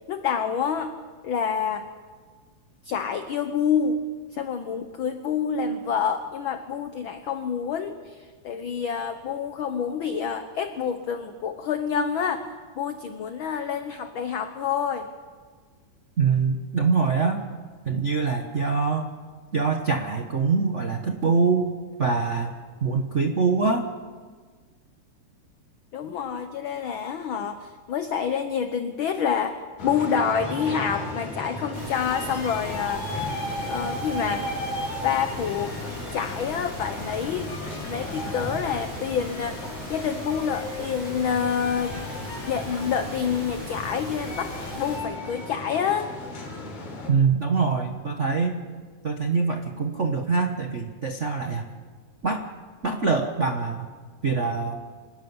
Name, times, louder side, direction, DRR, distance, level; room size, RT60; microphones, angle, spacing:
voice 1, 0.1-0.9 1.2-1.9 2.8-4.0 4.3-12.5 12.8-15.1 25.9-33.1 33.7-34.5 35.0-35.7 36.1-37.5 37.9-39.6 39.9-42.0 42.5-46.1, left 7 dB, 65° left, 8 dB, 1.3 m, -27 dB
voice 2, 16.2-17.4 17.8-19.1 19.5-21.7 22.0-23.9 47.1-48.5 49.0-51.7 52.2-52.5 52.8-53.9 54.2-54.8, right 4 dB, 90° right, 4 dB, 0.6 m, -24 dB
sound 1, 29.8-47.1, left 2 dB, 80° left, 4.5 m, -35 dB
sound 2, 31.7-45.0, right 1 dB, 20° right, 7.1 m, -40 dB
26.0 x 12.5 x 9.6 m, 1.5 s
omnidirectional pair, 3.4 m